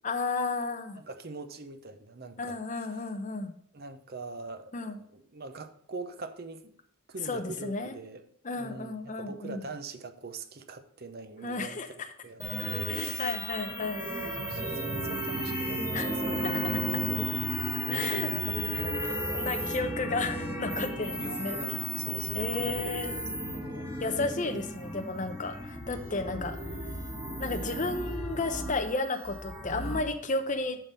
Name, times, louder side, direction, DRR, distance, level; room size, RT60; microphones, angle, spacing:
voice 1, 0.0-1.0 2.4-3.5 4.7-5.0 7.2-7.9 8.4-9.6 11.4-11.9 12.9-14.0 15.9-16.1 17.9-18.3 18.7-18.8 19.3-21.8 22.3-23.2 24.0-26.6 27.4-30.8, left 3 dB, 35° left, 0.8 m, -33 dB
voice 2, 0.9-2.9 3.7-6.7 7.1-8.3 8.6-13.4 14.1-17.2 17.8-19.7 21.2-23.9 26.5-26.8 29.8-30.1, right 3 dB, 50° right, 0.7 m, -43 dB
sound 1, 12.4-30.0, equal, 15° right, 1.8 m, -34 dB
11.0 x 3.9 x 5.2 m
head